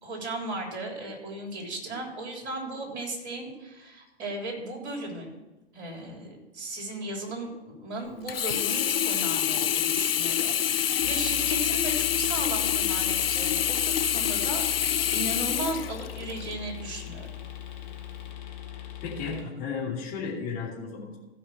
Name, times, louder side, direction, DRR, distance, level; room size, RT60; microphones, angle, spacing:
voice 1, 0.0-5.4 5.7-17.3, right 2 dB, 40° right, 1 dB, 3.5 m, -36 dB
Sink (filling or washing), 8.3-16.5 17.1-17.2, left 10 dB, 65° left, 0.6 m, -26 dB
sound 1, 11.0-19.4, left 11 dB, 45° left, 2.1 m, -40 dB
voice 2, 18.8-21.2, left 5 dB, 25° left, -4 dB, 2.9 m, -34 dB
15.5 x 5.4 x 6.1 m, 1.0 s
figure-of-eight pair, 115°, 32 cm